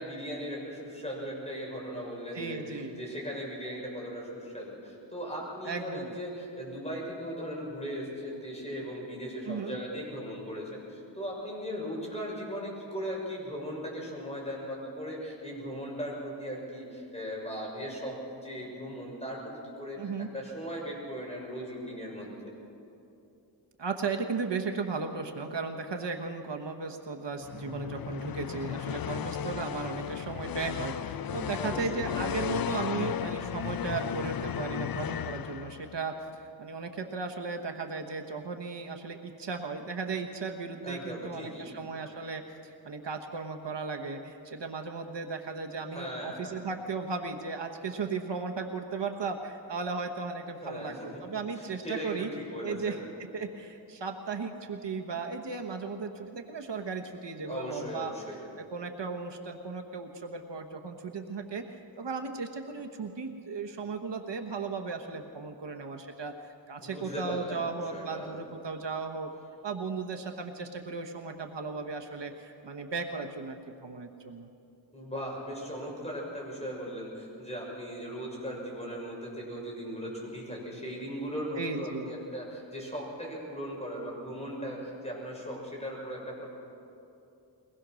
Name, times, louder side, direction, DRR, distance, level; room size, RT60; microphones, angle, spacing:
voice 1, 0.0-18.2 18.4-22.3 31.6-32.1 40.8-41.7 45.9-46.6 50.6-51.2 51.5-53.1 57.4-58.4 66.8-68.4 74.9-86.5, equal, 15° left, -3 dB, 6.4 m, -38 dB
voice 2, 2.3-3.0 5.6-6.1 9.5-9.8 20.0-20.3 23.8-51.0 51.2-52.3 52.6-53.0 53.3-58.1 58.6-61.6 62.0-69.3 69.6-74.5 81.5-82.1, right 4 dB, 65° right, 4 dB, 1.3 m, -36 dB
sound 1, 27.4-36.1, left 9 dB, 50° left, 0.5 m, -35 dB
22.5 x 19.5 x 6.4 m, 2.8 s
wide cardioid pair, 80°, 46 cm